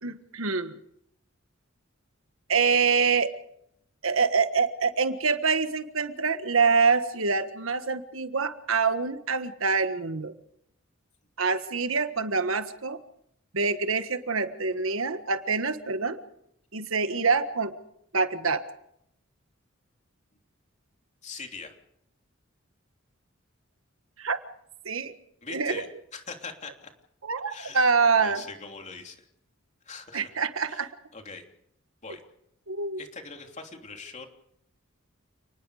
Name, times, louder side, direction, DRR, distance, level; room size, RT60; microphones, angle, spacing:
voice 1, 0.0-0.8 2.5-3.3 4.0-10.3 11.4-13.0 13.5-16.2 16.7-17.7 18.1-18.6 24.2-24.4 24.8-25.1 25.5-25.8 27.2-28.4 30.1-30.9 32.7-33.0, right 5 dB, 80° right, 9 dB, 1.5 m, -25 dB
voice 2, 21.2-21.7 25.4-25.9 26.1-26.9 27.5-29.3 29.8-30.3 30.6-31.4 32.0-32.2 33.0-34.3, left 4 dB, 35° left, 3 dB, 3.2 m, -42 dB
29.5 x 20.0 x 5.0 m, 0.75 s
head